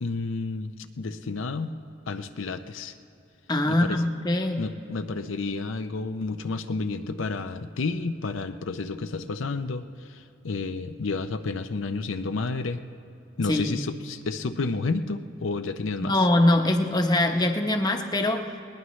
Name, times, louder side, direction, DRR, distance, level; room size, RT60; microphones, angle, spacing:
voice 1, 0.0-1.7 2.1-2.9 3.7-4.0 4.6-12.8 13.4-16.3, left 3 dB, 85° left, 8 dB, 0.6 m, -31 dB
voice 2, 3.5-4.6 13.5-13.8 16.0-18.5, left 1 dB, 20° left, 4 dB, 0.9 m, -23 dB
20.5 x 19.0 x 3.2 m, 2.7 s
head